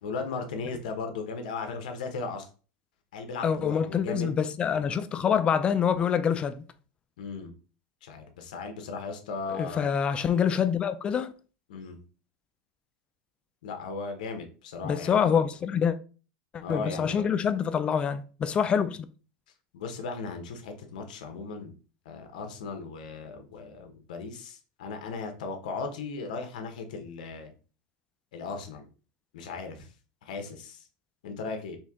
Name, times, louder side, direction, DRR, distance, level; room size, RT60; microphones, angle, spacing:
voice 1, 0.0-2.5 3.1-4.3 7.2-7.5 8.0-9.9 11.7-12.0 13.6-15.4 16.6-17.2 19.7-21.7 22.0-27.5 28.3-28.9 29.3-29.9 30.2-30.8 31.2-31.8, left 4 dB, 80° left, 1.0 m, -37 dB
voice 2, 3.4-6.6 9.6-11.3 14.8-16.0 16.5-19.1, left 7 dB, 25° left, 0.3 m, -26 dB
4.3 x 2.8 x 3.6 m
supercardioid pair, 140°, 4 cm